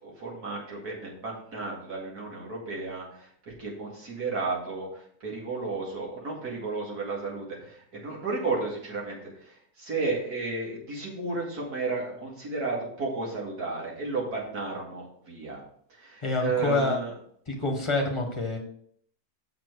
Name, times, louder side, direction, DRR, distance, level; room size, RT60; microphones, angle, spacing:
voice 1, 0.0-15.6 15.9-17.1, right 3 dB, 85° right, -2 dB, 2.8 m, -33 dB
voice 2, 16.2-17.0 17.5-18.6, left 2 dB, 20° left, 2 dB, 1.4 m, -27 dB
7.3 x 5.8 x 4.7 m, 0.63 s
omnidirectional pair, 1.6 m